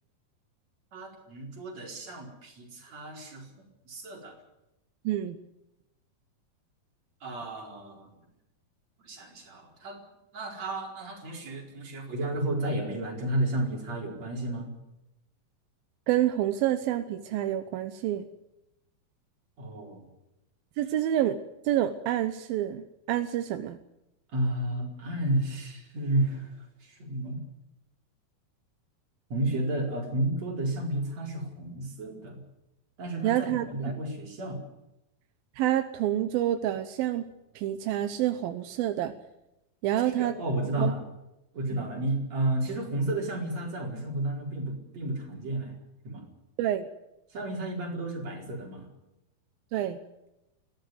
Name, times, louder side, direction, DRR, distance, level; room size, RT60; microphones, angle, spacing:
voice 1, 0.9-3.5 3.9-4.3 7.2-8.1 9.0-10.0 10.3-14.7 19.6-20.0 24.3-26.5 26.8-27.4 29.3-32.4 33.0-34.6 40.0-41.0 41.5-45.7 46.0-46.2 47.3-48.8, right 1 dB, 50° right, 0 dB, 5.8 m, -32 dB
voice 2, 5.1-5.4 16.1-18.3 20.8-21.4 21.6-23.8 33.2-33.6 35.6-37.3 37.6-39.1 39.8-40.4 40.8-40.9 41.7-41.9 46.6-46.9 49.7-50.0, right 12 dB, 85° right, 9 dB, 2.8 m, -28 dB
21.5 x 16.0 x 9.5 m, 0.91 s
omnidirectional pair, 4.1 m